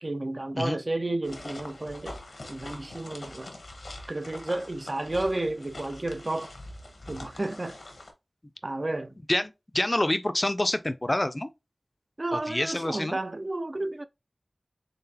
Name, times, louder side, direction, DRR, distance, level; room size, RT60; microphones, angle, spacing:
voice 1, 0.0-2.2 2.5-3.5 4.1-6.5 7.1-7.8 8.6-9.1 12.2-14.0, right 2 dB, 45° right, 0.4 m, -32 dB
sound 1, 1.2-8.1, left 1 dB, 85° left, 1.0 m, -44 dB
voice 2, 9.3-11.5 12.3-13.2, left 1 dB, 30° left, 0.4 m, -27 dB
3.8 x 3.6 x 2.7 m
wide cardioid pair, 50°, 0 cm